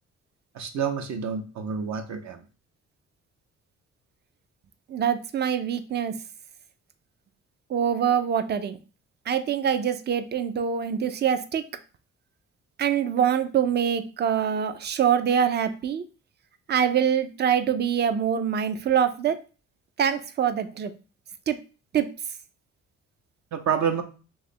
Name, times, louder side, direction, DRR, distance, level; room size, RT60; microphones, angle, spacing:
voice 1, 0.5-2.4 23.5-24.0, right 7 dB, 65° right, 5 dB, 0.7 m, -28 dB
voice 2, 4.9-6.1 7.7-8.8 9.3-11.6 12.8-16.0 16.7-19.4 20.0-20.9 21.5-21.6 21.9-22.1, right 8 dB, 35° right, 10 dB, 0.4 m, -24 dB
2.9 x 2.4 x 4.2 m, 0.35 s
cardioid pair, 90°, 30 cm